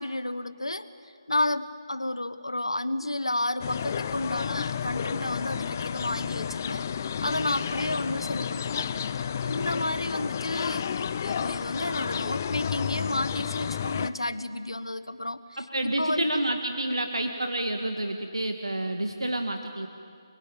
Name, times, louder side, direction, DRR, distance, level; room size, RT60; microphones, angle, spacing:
voice 1, 0.0-8.9 9.4-15.4 15.8-16.4, left 1 dB, 80° left, 13 dB, 1.4 m, -31 dB
sound 1, 3.6-14.1, left 7 dB, 35° left, 0.7 m, -31 dB
voice 2, 15.6-19.9, right 1 dB, 80° right, 4 dB, 2.0 m, -29 dB
30.0 x 23.0 x 8.7 m, 2.3 s
figure-of-eight pair, 150°, 3 cm